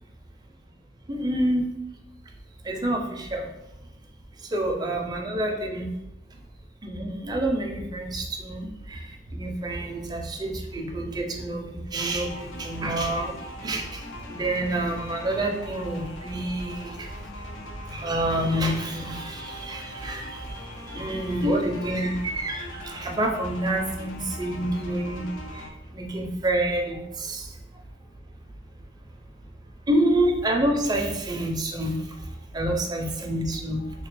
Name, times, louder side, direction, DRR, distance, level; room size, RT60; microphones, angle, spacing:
voice 1, 1.1-1.7 2.6-3.5 4.5-5.9 6.8-13.4 13.6-14.0 14.3-17.1 17.9-20.6 20.9-25.3 25.5-27.5 29.9-32.0 32.5-33.8, right 1 dB, 20° right, 2 dB, 0.4 m, -28 dB
sound 1, 12.0-25.7, left 1 dB, 85° left, 0.5 m, -41 dB
2.9 x 2.7 x 3.0 m, 0.90 s
head